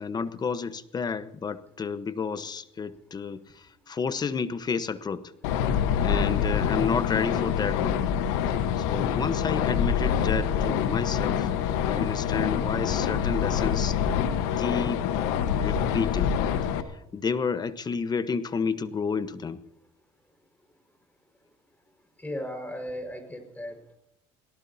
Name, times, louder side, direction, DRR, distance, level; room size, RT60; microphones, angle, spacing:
voice 1, 0.0-5.3 6.0-8.0 8.8-11.5 11.9-14.0 14.6-15.1 15.6-16.4 16.9-19.6, left 5 dB, 30° left, 13 dB, 1.1 m, -30 dB
sound 1, 5.4-16.8, left 8 dB, 80° left, 1.3 m, -26 dB
voice 2, 22.2-24.0, equal, 10° left, 5 dB, 5.2 m, -36 dB
27.5 x 18.0 x 2.8 m, 0.78 s
supercardioid pair, 90°, 14 cm